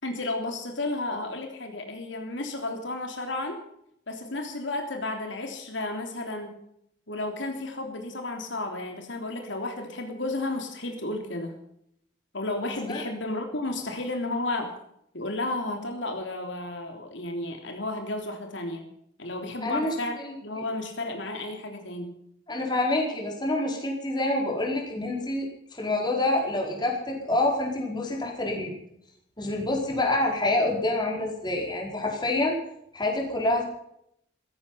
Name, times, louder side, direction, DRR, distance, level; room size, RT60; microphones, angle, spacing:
voice 1, 0.0-3.6 4.1-6.5 7.1-11.5 12.3-14.7 15.1-18.8 19.2-22.1, left 2 dB, 75° left, 4 dB, 3.3 m, -32 dB
voice 2, 19.6-19.9 22.5-25.5 25.7-28.7 29.4-32.6 32.9-33.6, left 2 dB, 25° left, 0 dB, 4.8 m, -27 dB
16.5 x 15.0 x 5.8 m, 0.74 s
head